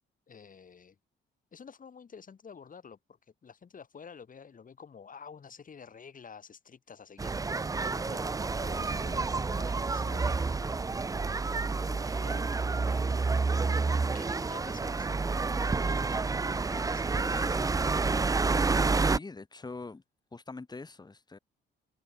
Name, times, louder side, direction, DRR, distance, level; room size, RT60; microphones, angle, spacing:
voice 1, 0.3-1.0 1.5-7.4 7.9-11.1 11.9-12.4 12.8-13.2 14.1-15.3 15.8-16.0 16.7-17.6, left 6 dB, 45° left, 4.7 m, -50 dB
sound 1, 7.2-19.2, right 4 dB, 15° right, 0.5 m, -29 dB
voice 2, 17.3-17.7 19.0-20.0 20.3-21.4, left 3 dB, 20° left, 2.0 m, -43 dB
cardioid pair, 90°, 20 cm